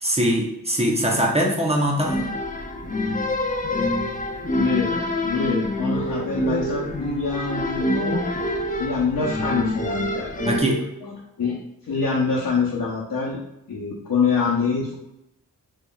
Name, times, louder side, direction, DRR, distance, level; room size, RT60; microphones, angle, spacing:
voice 1, 0.0-2.3 10.5-10.8, equal, 15° right, -1 dB, 0.7 m, -22 dB
sound 1, 2.1-10.6, left 2 dB, 25° left, 0.4 m, -27 dB
voice 2, 4.5-4.9 5.2-8.2 8.8-10.3 11.0-13.4 13.7-14.9, left 5 dB, 70° left, -5 dB, 0.9 m, -25 dB
sound 2, 5.9-6.8 7.8-8.8 9.8-10.8, right 5 dB, 80° right, 0.5 m, -29 dB
3.8 x 3.1 x 2.3 m, 0.84 s
wide cardioid pair, 70°, 36 cm